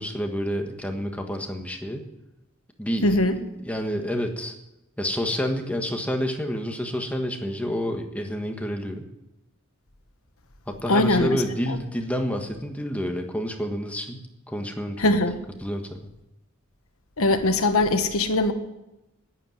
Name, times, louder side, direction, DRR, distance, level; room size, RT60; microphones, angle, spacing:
voice 1, 0.0-2.0 2.8-3.1 3.6-4.5 5.0-9.1 10.7-15.1 15.6-16.1, equal, 5° left, 3 dB, 1.4 m, -29 dB
voice 2, 3.0-3.4 10.9-11.8 15.0-15.4 17.2-18.5, left 2 dB, 80° left, 8 dB, 1.3 m, -21 dB
11.0 x 10.5 x 9.6 m, 0.93 s
head